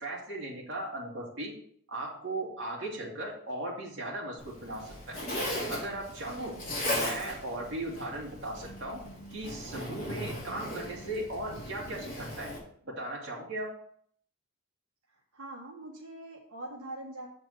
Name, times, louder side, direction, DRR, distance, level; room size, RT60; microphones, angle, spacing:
voice 1, 0.0-1.5 1.9-5.2 5.7-6.6 6.8-9.0 9.3-12.5 12.8-13.7, right 1 dB, 55° right, -4 dB, 2.6 m, -37 dB
Zipper (clothing), 4.4-12.6, left 1 dB, 35° left, 3.0 m, -37 dB
voice 2, 6.3-6.7 15.3-17.3, right 1 dB, 80° right, -3 dB, 1.4 m, -43 dB
7.6 x 4.6 x 6.5 m, 0.63 s
head